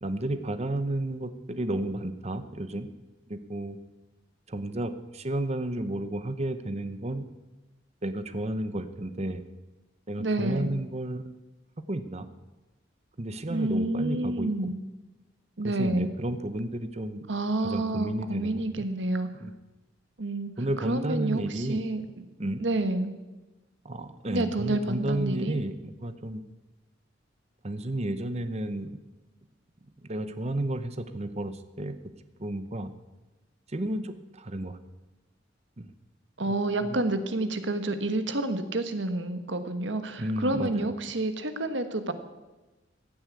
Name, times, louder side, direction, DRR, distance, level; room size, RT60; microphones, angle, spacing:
voice 1, 0.0-2.9 3.3-3.8 4.5-7.3 8.0-9.4 10.1-11.3 11.9-12.3 13.2-14.7 15.6-17.2 17.6-18.9 19.4-19.5 20.6-21.8 22.4-22.6 23.8-26.4 27.6-29.0 30.0-32.0 32.4-32.9 33.7-34.8 35.8-35.9 36.5-36.6 36.8-37.0 40.2-40.9, right 1 dB, 35° right, 11 dB, 0.9 m, -32 dB
voice 2, 10.2-10.7 13.5-14.8 15.6-16.1 17.3-19.3 20.2-20.5 20.8-22.0 22.6-23.1 24.3-25.6 36.4-42.1, right 2 dB, 70° right, 9 dB, 1.4 m, -29 dB
16.0 x 9.6 x 8.4 m, 1.1 s
head